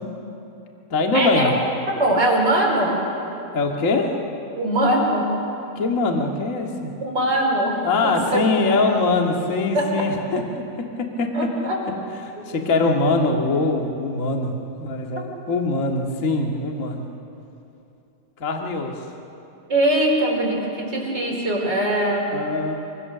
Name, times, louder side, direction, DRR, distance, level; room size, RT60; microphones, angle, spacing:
voice 1, 0.9-1.5 3.5-4.1 5.7-6.9 7.8-10.4 11.2-11.3 12.2-17.1 18.4-18.9 22.3-22.7, left 3 dB, 40° left, 2 dB, 1.0 m, -22 dB
voice 2, 1.9-3.0 4.6-5.4 7.0-8.8 9.7-10.0 11.3-11.8 12.5-12.6 19.7-22.3, right 1 dB, 25° right, -3 dB, 5.0 m, -22 dB
26.5 x 25.0 x 6.9 m, 2.8 s
omnidirectional pair, 4.6 m